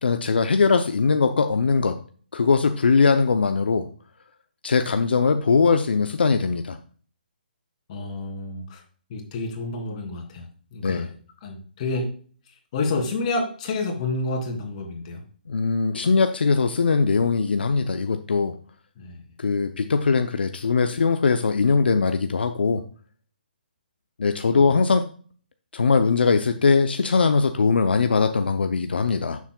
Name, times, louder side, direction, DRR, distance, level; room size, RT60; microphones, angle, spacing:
voice 1, 0.0-2.0 2.3-3.9 4.6-6.8 10.8-11.1 15.5-18.6 19.4-22.8 24.2-25.1 25.7-29.4, left 4 dB, 80° left, 8 dB, 0.6 m, -21 dB
voice 2, 7.9-8.8 9.1-10.5 10.7-11.1 11.4-12.1 12.7-15.2 19.0-19.1 24.5-24.8, left 3 dB, 40° left, 2 dB, 2.7 m, -29 dB
9.9 x 7.2 x 2.3 m, 0.43 s
hypercardioid pair, 145°, 5 cm